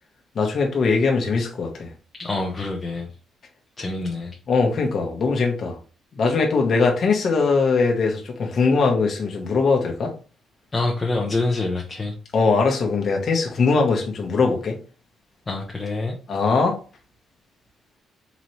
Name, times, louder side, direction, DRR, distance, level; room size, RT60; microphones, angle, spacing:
voice 1, 0.3-1.9 4.5-5.8 6.1-10.1 12.3-14.8 16.3-16.8, left 4 dB, 45° left, 1.0 m, -21 dB
voice 2, 2.2-3.1 3.8-4.3 10.7-12.1 15.5-16.2, left 2 dB, 20° left, 0.6 m, -26 dB
4.0 x 3.0 x 3.0 m
cardioid pair, 145°, 0 cm